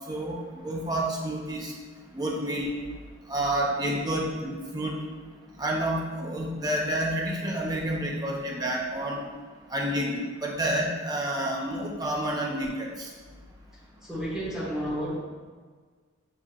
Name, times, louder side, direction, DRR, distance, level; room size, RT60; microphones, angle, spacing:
voice 1, 0.1-1.7 2.1-2.7 3.3-5.0 5.6-9.2 9.7-13.1, right 1 dB, 20° right, -1 dB, 0.6 m, -29 dB
voice 2, 14.0-15.2, equal, 5° right, -8 dB, 1.3 m, -31 dB
7.3 x 3.1 x 2.3 m, 1.5 s
head